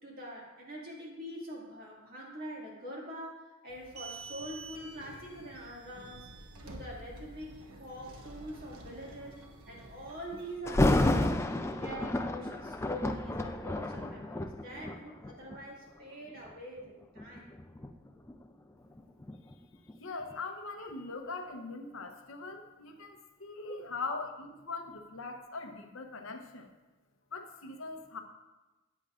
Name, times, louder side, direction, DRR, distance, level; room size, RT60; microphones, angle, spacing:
voice 1, 0.0-9.4 9.7-11.4 11.8-17.5 23.6-23.9, equal, 40° right, -3 dB, 2.2 m, -44 dB
sound 1, 3.7-10.6, right 2 dB, 75° right, 1.1 m, -49 dB
Thunder, 10.7-15.6 16.3-16.5 17.2-20.0 20.3-20.4, left 1 dB, 10° left, 0.3 m, -31 dB
voice 2, 20.0-26.7 27.3-28.2, left 3 dB, 60° left, 4 dB, 0.8 m, -41 dB
13.5 x 8.8 x 2.5 m, 1.1 s
head